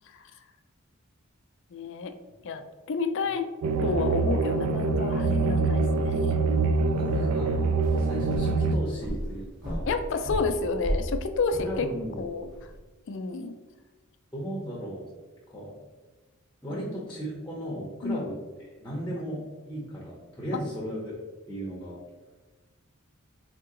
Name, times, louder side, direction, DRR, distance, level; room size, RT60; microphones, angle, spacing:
voice 1, 1.7-2.1 2.4-2.6 2.9-3.5 3.8-6.1 9.9-11.9 12.2-12.5 13.1-13.5 16.7-17.0 18.0-18.3 19.1-19.2, left 4 dB, 55° left, 8 dB, 0.4 m, -30 dB
sound 1, 3.6-8.8, right 3 dB, 75° right, 0.3 m, -25 dB
voice 2, 6.8-9.9 11.6-12.3 14.3-15.1 15.5-15.7 16.6-21.2 21.5-22.0, right 1 dB, 10° left, -5 dB, 0.7 m, -36 dB
sound 2, 7.8-12.8, equal, 55° right, 1.3 m, -35 dB
3.8 x 2.8 x 3.7 m, 1.2 s
head